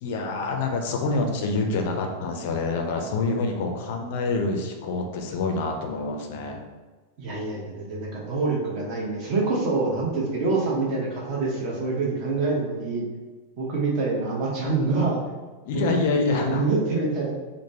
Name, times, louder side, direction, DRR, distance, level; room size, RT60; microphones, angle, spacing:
voice 1, 0.0-6.6 15.7-16.6, left 3 dB, 50° left, 3 dB, 0.4 m, -26 dB
voice 2, 7.2-13.1 13.6-15.2 15.7-17.3, right 3 dB, 40° right, -3 dB, 0.8 m, -26 dB
3.1 x 2.0 x 2.7 m, 1.3 s
figure-of-eight pair, 90°, 0 cm